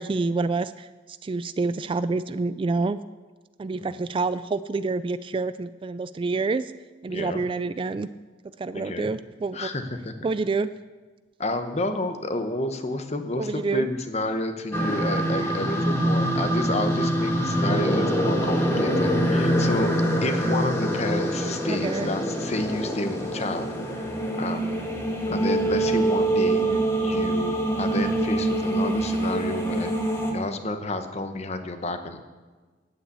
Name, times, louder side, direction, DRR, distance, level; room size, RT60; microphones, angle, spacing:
voice 1, 0.0-3.0 3.6-6.7 7.0-8.1 8.6-9.7 10.2-10.7 13.4-13.9 21.7-22.1 26.6-26.9, right 3 dB, 30° right, 14 dB, 0.3 m, -28 dB
voice 2, 7.1-7.4 8.7-9.1 9.5-10.3 11.4-19.9 20.2-24.9 25.3-26.6 27.0-29.9 30.3-32.2, left 2 dB, 35° left, 8 dB, 1.0 m, -30 dB
sound 1, 14.7-30.3, right 1 dB, 15° left, 1.6 m, -25 dB
9.8 x 8.8 x 8.3 m, 1.3 s
head